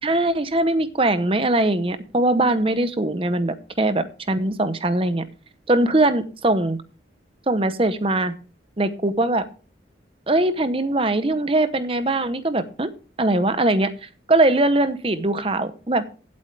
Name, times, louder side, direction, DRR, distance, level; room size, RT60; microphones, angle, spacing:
voice 1, 0.0-5.2 5.7-6.8 7.5-8.3 8.8-9.5 10.3-12.9 13.2-16.0, right 2 dB, 30° right, 12 dB, 0.8 m, -21 dB
16.0 x 8.6 x 3.3 m, 0.36 s
head